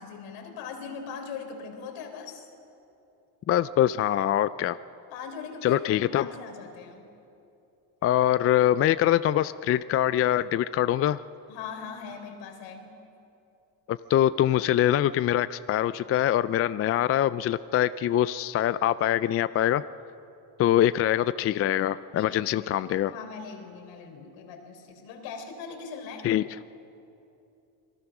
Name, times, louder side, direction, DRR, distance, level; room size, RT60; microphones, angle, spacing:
voice 1, 0.0-2.4 5.1-7.1 11.5-13.0 22.2-26.3, left 5 dB, 70° left, 4 dB, 3.9 m, -40 dB
voice 2, 3.5-4.8 5.6-6.3 8.0-11.2 13.9-19.8 20.6-23.1 26.2-26.4, left 12 dB, 35° left, 15 dB, 0.4 m, -24 dB
27.0 x 20.0 x 6.1 m, 2.8 s
supercardioid pair, 100°, 44 cm